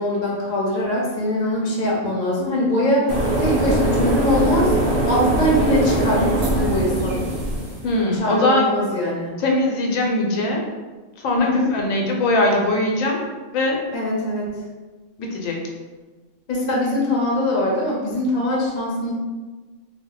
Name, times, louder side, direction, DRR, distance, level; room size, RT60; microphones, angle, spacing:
voice 1, 0.0-4.8 5.0-7.2 8.1-9.3 11.4-11.6 13.9-14.5 16.5-19.1, left 1 dB, 45° left, -3 dB, 0.7 m, -22 dB
sound 1, 3.1-7.9, right 1 dB, 70° right, 0.3 m, -21 dB
voice 2, 7.8-8.6 9.4-10.6 11.2-13.2 13.5-13.8 15.2-15.6, left 2 dB, 90° left, 0 dB, 1.0 m, -21 dB
2.3 x 2.0 x 3.8 m, 1.3 s
omnidirectional pair, 1.3 m